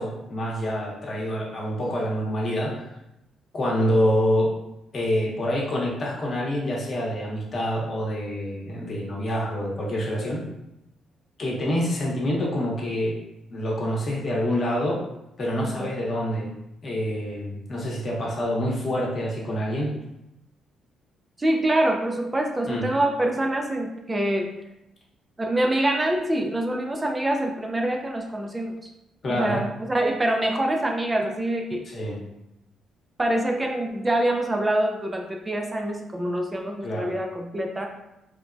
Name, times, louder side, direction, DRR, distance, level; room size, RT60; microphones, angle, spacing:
voice 1, 0.0-2.8 3.5-4.5 4.9-10.4 11.4-13.2 13.5-15.0 15.4-16.5 16.8-19.9 22.7-22.8 29.2-29.6 31.9-32.2 36.8-37.1, equal, 45° left, -3 dB, 0.8 m, -26 dB
voice 2, 15.6-15.9 21.4-24.5 25.4-28.7 29.3-31.8 33.2-37.9, right 1 dB, 20° right, 2 dB, 0.4 m, -25 dB
3.2 x 2.1 x 2.5 m, 0.88 s
cardioid pair, 90°, 0 cm